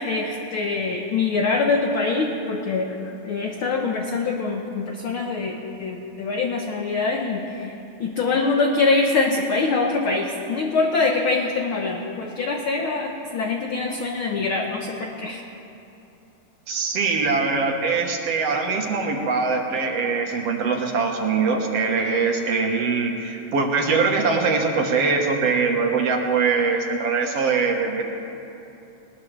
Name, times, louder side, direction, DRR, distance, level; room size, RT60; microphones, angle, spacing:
voice 1, 0.0-2.9 3.2-7.7 8.0-15.4, left 3 dB, 60° left, 2 dB, 1.4 m, -24 dB
voice 2, 16.7-28.0, right 4 dB, 60° right, 2 dB, 2.1 m, -22 dB
20.5 x 20.0 x 3.3 m, 2.8 s
omnidirectional pair, 3.4 m